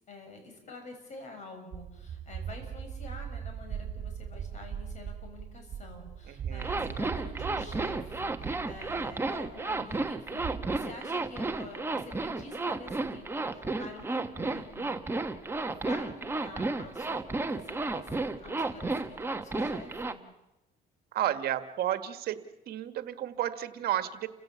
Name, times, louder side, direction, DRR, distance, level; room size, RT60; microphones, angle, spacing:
voice 1, 0.1-14.9 15.7-20.2, left 2 dB, 45° left, 5 dB, 6.5 m, -48 dB
sound 1, 1.7-10.8, right 8 dB, 50° right, 2.7 m, -40 dB
voice 2, 6.3-6.8 21.1-22.4 22.7-24.3, right 12 dB, 65° right, 10 dB, 1.6 m, -32 dB
Zipper (clothing), 6.6-20.1, right 3 dB, 15° right, 1.2 m, -32 dB
29.5 x 16.0 x 7.1 m, 0.95 s
cardioid pair, 110°, 17 cm